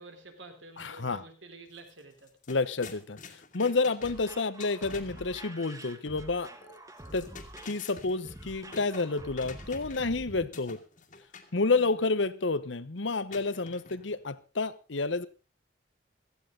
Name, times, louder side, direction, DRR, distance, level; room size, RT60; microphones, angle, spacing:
voice 1, 0.0-2.3 11.7-12.1, right 2 dB, 85° right, 3.9 m, -50 dB
voice 2, 0.8-1.2 2.5-6.8 7.1-7.3 7.6-10.8 11.5-15.3, left 3 dB, 80° left, 1.0 m, -30 dB
sound 1, 1.8-1.9 2.2-5.3 7.0-10.2 10.5-11.6 13.3-14.2, left 4 dB, 40° left, 2.0 m, -48 dB
sound 2, 4.0-10.5, right 1 dB, 15° right, 1.4 m, -47 dB
17.0 x 14.5 x 3.8 m
head